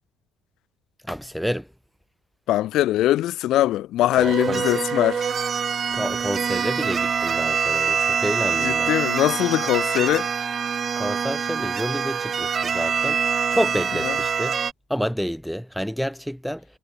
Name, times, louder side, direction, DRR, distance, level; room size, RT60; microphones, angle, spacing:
voice 1, 1.0-1.7 4.2-4.6 5.9-8.9 11.0-14.6 14.9-16.7, equal, ahead, 3.5 m, -29 dB
voice 2, 2.5-5.3 8.6-10.3 14.0-14.2, left 14 dB, 70° left, 1.7 m, -22 dB
sound 1, 4.1-14.7, right 6 dB, 40° right, 1.1 m, -25 dB
supercardioid pair, 70°, 0 cm